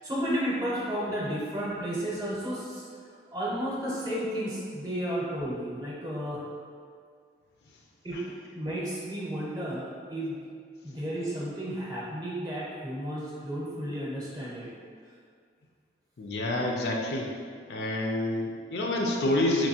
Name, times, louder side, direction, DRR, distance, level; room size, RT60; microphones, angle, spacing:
voice 1, 0.0-2.8 3.3-6.4 8.0-8.2 8.5-10.4 10.8-14.7, equal, 20° right, -6 dB, 0.6 m, -32 dB
voice 2, 16.2-17.3 17.7-19.7, left 1 dB, 65° left, 0 dB, 0.4 m, -28 dB
4.4 x 2.6 x 2.8 m, 2.1 s
head